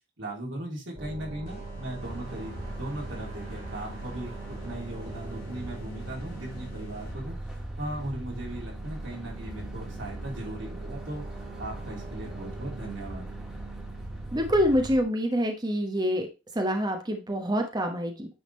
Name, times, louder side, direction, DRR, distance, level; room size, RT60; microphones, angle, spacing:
voice 1, 0.2-7.4 7.8-11.2 11.6-13.3, right 1 dB, 75° right, -2 dB, 3.3 m, -38 dB
sound 1, 0.9-15.0, right 2 dB, 40° right, 2.3 m, -40 dB
sound 2, 1.4-7.6, equal, 50° left, 3.3 m, -51 dB
sound 3, 2.0-15.0, equal, 5° right, 1.6 m, -44 dB
voice 2, 14.3-16.3 16.5-18.3, equal, 20° right, 4 dB, 1.0 m, -26 dB
9.5 x 3.7 x 4.2 m, 0.29 s
head